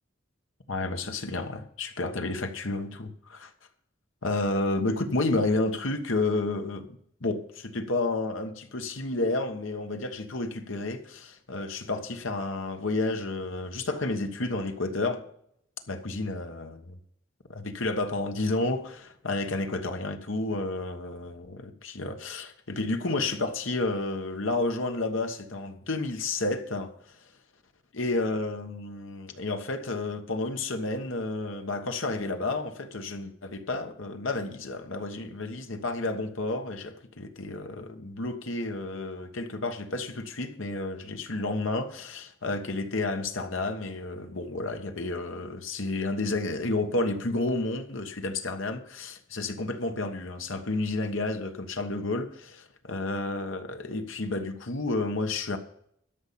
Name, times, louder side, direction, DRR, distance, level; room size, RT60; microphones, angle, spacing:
voice 1, 0.7-3.5 4.2-15.2 15.9-16.9 17.5-27.2 27.9-55.6, left 2 dB, 75° left, 1.4 m, -31 dB
12.5 x 5.6 x 8.5 m
head